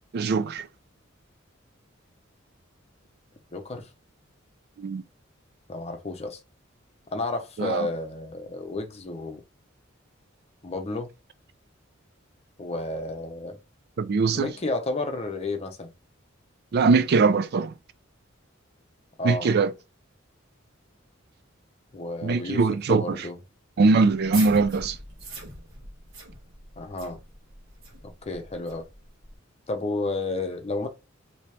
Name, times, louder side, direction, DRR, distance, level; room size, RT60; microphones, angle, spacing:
voice 1, 0.1-0.7 4.8-5.0 7.6-7.9 14.0-14.5 16.7-17.7 19.2-19.7 22.2-23.2 23.8-25.0, right 4 dB, 55° right, 0.4 m, -21 dB
voice 2, 3.5-3.9 5.7-6.4 7.1-9.4 10.6-11.1 12.6-13.6 14.3-15.9 19.2-19.5 21.9-23.4 26.8-27.2 28.0-28.9 29.7-30.9, left 2 dB, 30° left, 0.6 m, -31 dB
sound 1, 24.1-29.4, right 3 dB, 85° right, 1.2 m, -42 dB
3.0 x 2.7 x 3.3 m
head